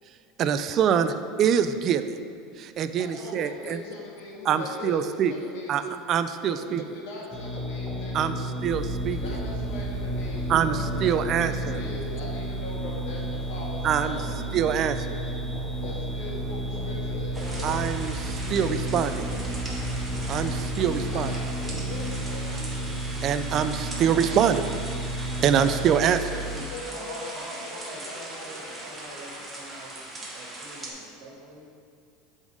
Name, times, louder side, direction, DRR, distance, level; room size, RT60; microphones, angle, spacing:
voice 1, 0.4-2.0 2.6-3.8 4.5-5.3 5.7-6.8 8.1-8.4 8.6-9.2 10.5-11.8 13.8-14.2 14.5-15.2 17.6-19.3 20.3-21.3 23.2-24.6 25.4-26.2, right 8 dB, 40° right, 11 dB, 0.3 m, -25 dB
voice 2, 2.9-5.9 6.4-8.6 9.1-14.7 15.1-19.0 19.2-19.6 20.8-23.0 24.0-24.6 26.3-29.2, left 2 dB, 75° left, -3 dB, 1.7 m, -41 dB
sound 1, 7.3-25.9, left 1 dB, 20° left, 0.7 m, -34 dB
sound 2, 8.6-26.6, right 4 dB, ahead, 1.0 m, -35 dB
sound 3, 17.3-30.9, right 1 dB, 15° right, 1.1 m, -40 dB
voice 3, 25.5-26.2 26.5-26.6 26.9-31.6, right 2 dB, 65° right, -2 dB, 1.6 m, -43 dB
7.1 x 4.0 x 4.8 m, 2.2 s
supercardioid pair, 135°, 0 cm